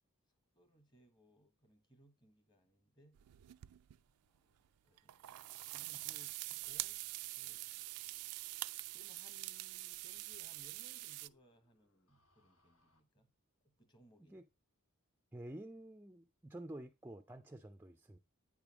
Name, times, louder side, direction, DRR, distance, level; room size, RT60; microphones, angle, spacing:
voice 1, 0.5-3.2 4.3-6.4 6.6-7.0 7.3-7.8 8.9-13.3 13.6-14.4, equal, 20° left, 1.1 m, -66 dB
sound 1, 3.2-4.0 5.0-11.3, right 19 dB, 85° right, 0.3 m, -45 dB
sound 2, 5.3-13.0, left 2 dB, 70° left, 1.4 m, -75 dB
voice 2, 15.3-18.2, right 1 dB, 10° right, 0.4 m, -50 dB
9.0 x 3.4 x 6.0 m
head